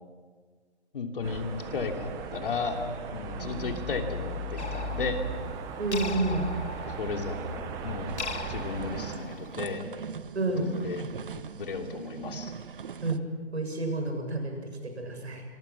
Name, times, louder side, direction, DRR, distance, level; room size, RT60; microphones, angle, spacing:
voice 1, 0.9-2.8 3.1-5.2 6.9-8.2 8.5-9.8 10.6-11.0 11.6-12.5, left 4 dB, 50° left, 3 dB, 3.2 m, -34 dB
sound 1, 1.2-9.2, right 3 dB, 10° right, 1.0 m, -37 dB
sound 2, 4.6-9.8, left 4 dB, 75° left, 2.2 m, -41 dB
voice 2, 5.8-6.5 10.3-10.7 13.0-13.2 13.5-15.4, right 2 dB, 70° right, 4 dB, 7.4 m, -30 dB
sound 3, 8.1-13.2, right 6 dB, 50° right, 1.2 m, -41 dB
27.0 x 23.0 x 6.1 m, 1.5 s
figure-of-eight pair, 150°, 34 cm